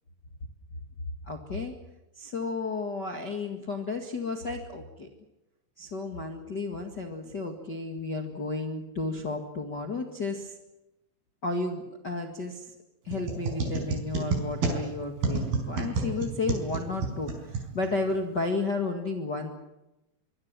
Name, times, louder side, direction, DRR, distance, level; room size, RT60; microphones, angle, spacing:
voice 1, 1.2-1.7 2.1-5.1 5.8-10.6 11.4-12.7 13.0-19.5, left 3 dB, 65° left, 4 dB, 1.0 m, -32 dB
sound 1, 13.1-18.2, right 4 dB, 55° right, 6.3 m, -31 dB
24.5 x 22.5 x 7.5 m, 0.97 s
omnidirectional pair, 5.4 m